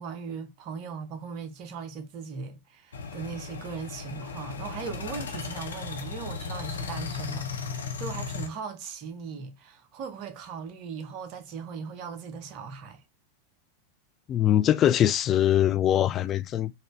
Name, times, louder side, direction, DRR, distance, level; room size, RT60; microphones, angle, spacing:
voice 1, 0.0-13.0, right 6 dB, 40° right, 0.7 m, -38 dB
sound 1, 2.9-8.5, left 5 dB, 70° left, 0.7 m, -36 dB
voice 2, 14.3-16.7, left 11 dB, 30° left, 0.4 m, -22 dB
4.2 x 2.5 x 3.1 m
figure-of-eight pair, 90°, 0 cm